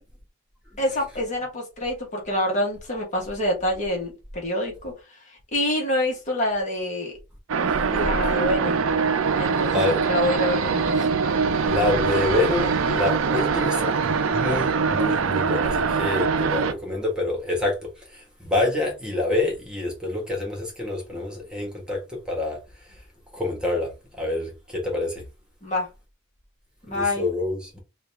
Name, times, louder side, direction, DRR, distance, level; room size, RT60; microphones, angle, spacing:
voice 1, 0.8-4.9 5.5-7.2 7.9-8.9 9.3-10.9 12.6-12.7 13.5-13.8 25.6-25.9 26.9-27.3, left 1 dB, 40° left, 1.3 m, -27 dB
sound 1, 7.5-16.7, right 5 dB, 90° right, 0.5 m, -23 dB
voice 2, 9.6-10.0 11.6-17.7 18.4-22.0 22.3-22.6 23.3-23.9 24.2-25.1 26.9-27.8, left 2 dB, 5° right, 1.5 m, -26 dB
3.9 x 2.5 x 3.4 m
head